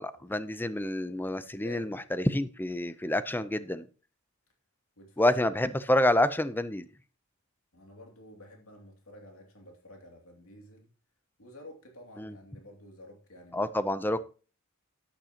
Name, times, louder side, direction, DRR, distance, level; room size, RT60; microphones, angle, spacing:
voice 1, 0.0-3.9 5.2-6.9 12.2-12.3 13.5-14.3, left 1 dB, 10° left, 0.5 m, -28 dB
voice 2, 1.4-2.0 5.0-5.4 7.7-10.9 11.4-13.9, equal, 90° left, 2.6 m, -51 dB
12.0 x 8.9 x 2.9 m
head